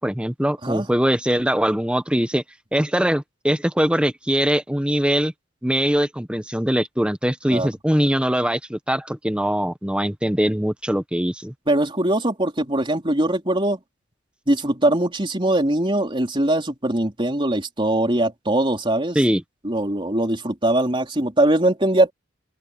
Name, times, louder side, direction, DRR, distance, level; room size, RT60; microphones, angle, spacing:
voice 1, 0.0-2.4 2.7-5.3 5.6-11.5 19.1-19.4, equal, 5° right, 1.2 m, -22 dB
voice 2, 11.7-13.8 14.5-19.2 19.6-22.1, right 1 dB, 25° right, 3.6 m, -21 dB
open air
head